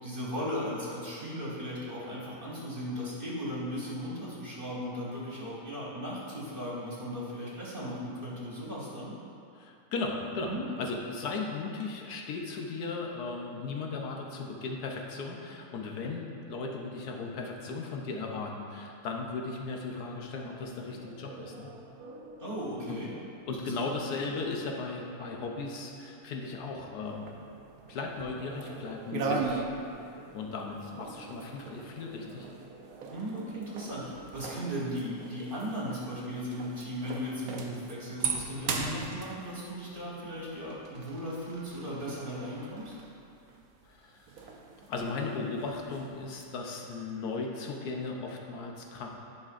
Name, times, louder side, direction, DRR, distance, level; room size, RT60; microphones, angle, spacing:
voice 1, 0.0-9.1 10.4-10.6 22.4-23.1 23.5-23.9 33.1-42.9, equal, 35° right, -6 dB, 1.4 m, -37 dB
voice 2, 9.5-21.7 22.9-23.0 23.5-27.3 27.9-29.6 30.3-32.5 43.8-44.5 44.9-49.1, left 3 dB, 85° left, 1 dB, 1.3 m, -36 dB
sound 1, 19.8-34.9, right 3 dB, 90° right, 1.2 m, -51 dB
sound 2, 27.1-28.8 29.1-46.4, right 4 dB, 70° right, 1.1 m, -39 dB
10.5 x 5.6 x 2.5 m, 2.5 s
omnidirectional pair, 1.6 m